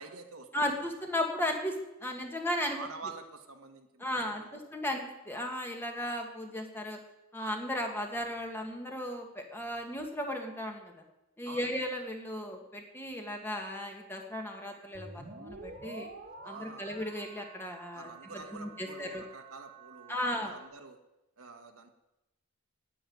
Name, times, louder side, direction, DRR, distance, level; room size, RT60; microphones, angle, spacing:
voice 1, 0.0-0.7 2.7-4.7 11.5-11.7 16.4-16.9 17.9-21.0 21.4-21.9, right 4 dB, 75° right, 4 dB, 1.5 m, -47 dB
voice 2, 0.5-2.8 4.0-7.0 7.3-10.9 11.4-16.1 16.4-18.1 18.5-19.2 20.1-20.5, left 1 dB, 10° left, 2 dB, 1.7 m, -35 dB
sound 1, 14.9-20.7, right 3 dB, 45° right, 1.7 m, -49 dB
10.0 x 9.0 x 9.4 m, 0.92 s
head